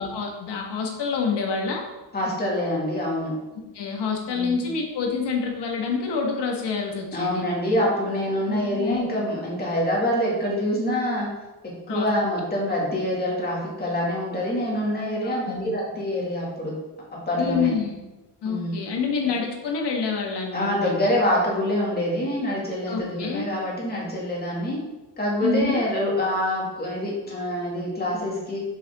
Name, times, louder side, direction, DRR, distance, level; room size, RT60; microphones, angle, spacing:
voice 1, 0.0-1.8 3.7-7.4 8.5-9.1 11.9-12.1 15.2-15.7 17.4-18.0 18.4-20.9 22.9-23.5 25.4-25.8, left 5 dB, 80° left, 1 dB, 1.7 m, -27 dB
voice 2, 2.1-3.3 4.3-4.6 7.1-11.3 11.6-16.7 17.3-17.7 18.4-18.8 19.2-19.3 20.5-24.8 25.2-28.6, left 1 dB, 25° left, -4 dB, 2.2 m, -26 dB
7.1 x 6.9 x 3.6 m, 1.1 s
wide cardioid pair, 170°, 40 cm